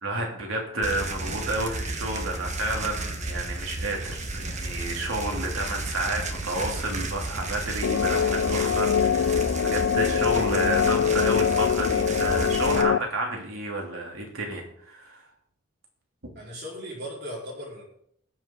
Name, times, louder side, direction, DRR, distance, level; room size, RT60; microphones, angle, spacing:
voice 1, 0.0-15.2, right 1 dB, 80° right, 0 dB, 3.0 m, -31 dB
sound 1, 0.8-12.8, right 2 dB, 35° right, 1.3 m, -33 dB
sound 2, 7.8-13.0, left 7 dB, 70° left, 0.4 m, -23 dB
voice 2, 16.3-17.8, equal, 55° right, -4 dB, 4.4 m, -38 dB
20.0 x 7.4 x 3.9 m, 0.68 s
head